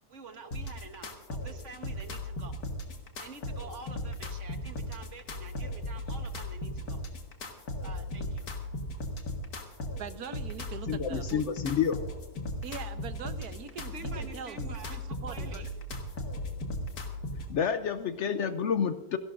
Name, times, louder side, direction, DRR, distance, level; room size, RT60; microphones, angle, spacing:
voice 1, 0.1-2.5 3.2-7.0 7.8-8.5 13.9-15.7, right 4 dB, 55° right, 7 dB, 1.5 m, -47 dB
sound 1, 0.5-17.5, left 1 dB, 85° left, 2.1 m, -37 dB
voice 2, 10.0-11.4 12.6-15.6, right 7 dB, 90° right, 10 dB, 1.5 m, -42 dB
voice 3, 10.9-12.0 17.5-19.2, left 7 dB, 65° left, 11 dB, 0.8 m, -29 dB
29.5 x 11.5 x 2.5 m, 1.0 s
omnidirectional pair, 1.6 m